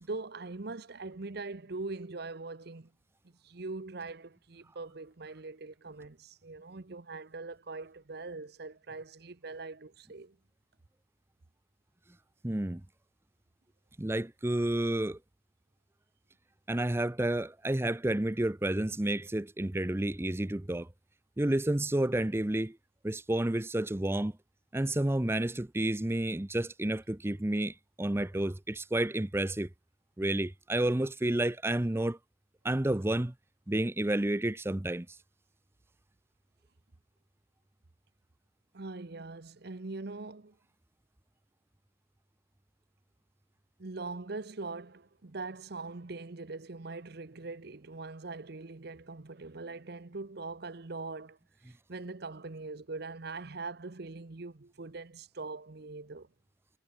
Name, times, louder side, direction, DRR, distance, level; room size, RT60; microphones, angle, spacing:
voice 1, 0.0-2.9 3.2-10.4 38.7-40.6 43.8-51.4 51.6-56.3, right 3 dB, 60° right, 0.9 m, -42 dB
voice 2, 12.4-12.8 14.0-15.2 16.7-20.9 21.4-22.8 23.0-24.3 24.7-29.7 30.2-32.2 32.6-33.3 33.7-35.1, right 1 dB, 15° right, 0.6 m, -30 dB
head